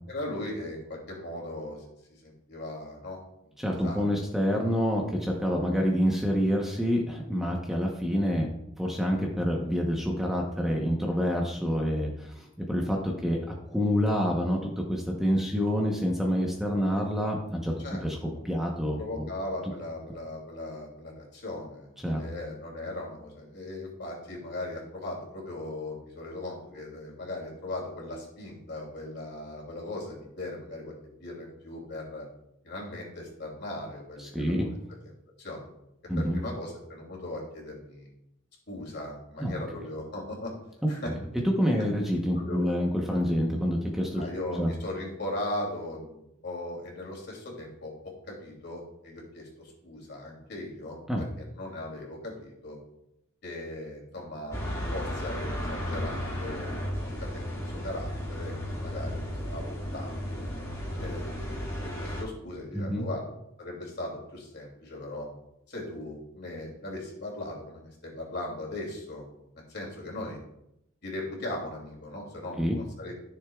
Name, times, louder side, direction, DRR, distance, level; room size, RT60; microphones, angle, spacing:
voice 1, 0.1-1.8 2.2-3.2 3.8-4.3 17.8-18.1 18.3-18.4 19.0-32.3 32.6-34.8 35.0-35.1 35.4-35.7 36.2-38.1 38.7-40.5 40.9-41.1 42.4-42.7 44.1-52.8 53.4-54.6 54.9-60.4 61.0-63.2 63.6-65.3 65.7-69.3 69.7-70.4 71.0-73.1, left 1 dB, 55° left, -1 dB, 2.8 m, -38 dB
voice 2, 3.6-8.5 8.8-17.8 18.0-18.2 18.4-19.3 22.0-22.2 34.2-34.7 36.1-36.4 39.4-39.5 41.6-44.2 44.5-44.7 51.1-51.2 62.7-63.0 72.6-72.8, equal, ahead, -1 dB, 0.9 m, -27 dB
sound 1, 54.5-62.2, equal, 15° left, 2.0 m, -34 dB
14.0 x 6.8 x 2.4 m, 0.81 s
head